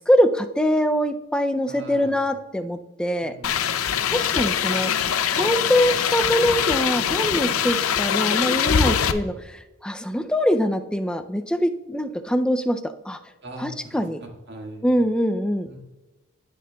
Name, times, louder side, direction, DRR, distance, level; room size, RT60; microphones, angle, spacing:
voice 1, 0.0-3.3 4.1-4.9 5.3-12.8 13.1-13.2 13.6-14.2 14.8-15.7, equal, 5° left, 8 dB, 0.4 m, -23 dB
voice 2, 1.7-2.2 3.2-3.8 8.7-9.2 13.4-14.8 15.7-15.8, right 1 dB, 55° right, 0 dB, 1.8 m, -40 dB
sound 1, 3.4-9.1, left 8 dB, 85° left, 0.5 m, -23 dB
17.0 x 6.5 x 2.3 m, 1.1 s
head